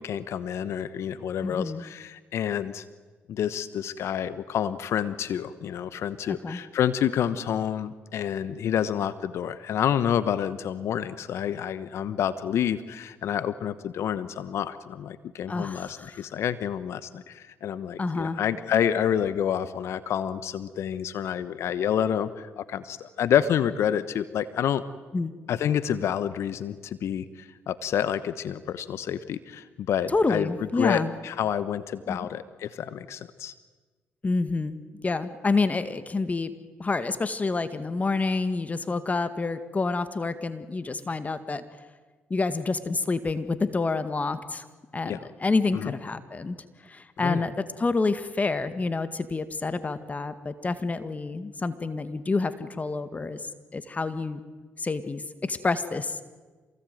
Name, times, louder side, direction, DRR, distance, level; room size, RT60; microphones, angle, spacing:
voice 1, 0.0-2.8 3.3-24.8 25.5-33.5 45.0-45.2 45.7-45.9 47.2-47.4, left 9 dB, 70° left, 14 dB, 1.1 m, -28 dB
voice 2, 1.4-1.8 6.3-6.6 15.5-16.1 18.0-18.4 25.1-25.3 30.1-31.1 32.1-32.3 34.2-34.8 35.0-36.5 36.8-41.6 42.3-44.7 44.9-46.6 46.9-53.4 53.7-54.4 54.8-56.2, left 3 dB, 30° left, 12 dB, 1.9 m, -28 dB
27.0 x 19.5 x 9.3 m, 1.3 s
supercardioid pair, 55°, 5 cm